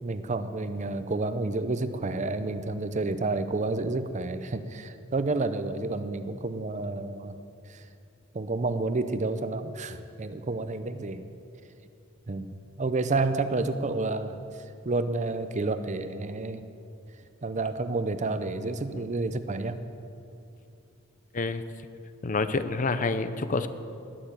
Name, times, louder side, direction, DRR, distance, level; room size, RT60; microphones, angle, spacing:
voice 1, 0.0-7.4 7.7-7.8 8.3-11.2 12.3-14.4 14.8-16.6 17.4-19.8, right 3 dB, 35° right, 10 dB, 0.6 m, -30 dB
voice 2, 22.2-23.7, left 3 dB, 40° left, 11 dB, 0.6 m, -28 dB
19.5 x 6.8 x 8.7 m, 2.7 s
head